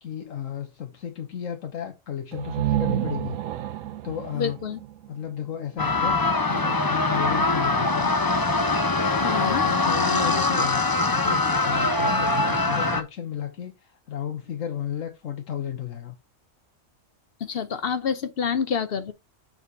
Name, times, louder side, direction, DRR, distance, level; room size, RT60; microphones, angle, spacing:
voice 1, 0.0-3.4 4.0-4.6 5.1-8.1 9.4-16.1, left 9 dB, 80° left, 1.3 m, -34 dB
sound 1, 2.3-6.0, right 13 dB, 80° right, 1.0 m, -30 dB
voice 2, 4.3-4.8 9.2-9.6 17.4-19.1, left 6 dB, 55° left, 0.8 m, -27 dB
sound 2, 5.8-13.0, left 3 dB, 20° left, 0.7 m, -23 dB
7.6 x 4.2 x 4.4 m
omnidirectional pair, 1.3 m